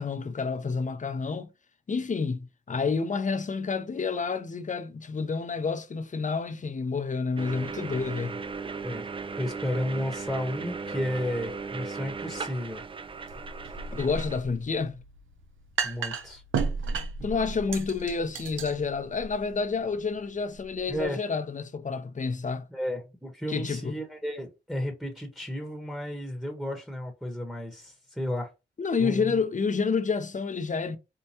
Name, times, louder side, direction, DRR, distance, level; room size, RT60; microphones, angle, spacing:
voice 1, 0.0-1.5 1.9-8.4 13.9-15.0 17.2-22.6 23.5-23.9 28.8-31.0, left 5 dB, 40° left, 0.6 m, -29 dB
sound 1, 7.4-14.4, right 4 dB, 25° right, 0.4 m, -37 dB
voice 2, 9.4-12.8 15.8-16.4 20.9-21.2 22.7-28.5 29.0-29.4, equal, ahead, 1.0 m, -33 dB
sound 2, 13.3-21.1, right 5 dB, 85° right, 0.6 m, -35 dB
4.5 x 2.2 x 2.8 m
cardioid pair, 55°, 20 cm